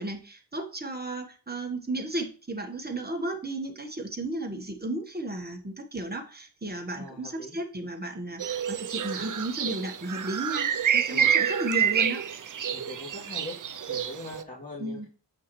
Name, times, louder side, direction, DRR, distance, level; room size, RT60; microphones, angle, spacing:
voice 1, 0.0-10.7 10.9-12.2 14.8-15.1, right 1 dB, 20° right, 3 dB, 1.2 m, -34 dB
voice 2, 6.9-7.6 11.1-11.3 12.7-13.5 13.9-15.1, left 1 dB, 20° left, -5 dB, 2.4 m, -41 dB
sound 1, 8.4-14.4, right 8 dB, 50° right, 0.4 m, -28 dB
7.4 x 5.6 x 3.0 m, 0.36 s
wide cardioid pair, 65°, 43 cm